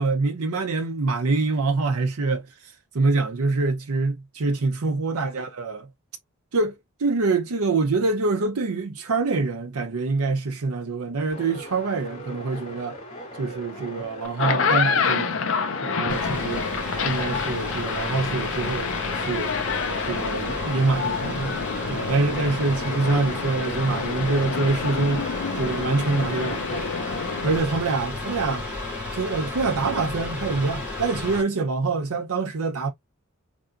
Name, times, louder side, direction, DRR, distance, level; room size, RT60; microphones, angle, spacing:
voice 1, 0.0-5.9 6.5-13.0 13.4-15.4 15.8-16.6 17.0-19.5 20.0-21.5 21.9-25.2 25.6-26.9 27.4-28.7 29.1-32.9, right 3 dB, 90° right, 0.6 m, -25 dB
sound 1, 11.3-26.5, equal, 25° left, 2.2 m, -40 dB
sound 2, 14.2-27.6, left 5 dB, 60° left, 0.6 m, -28 dB
Mechanical fan, 16.1-31.4, left 2 dB, 5° right, 2.0 m, -33 dB
3.9 x 3.4 x 2.5 m
head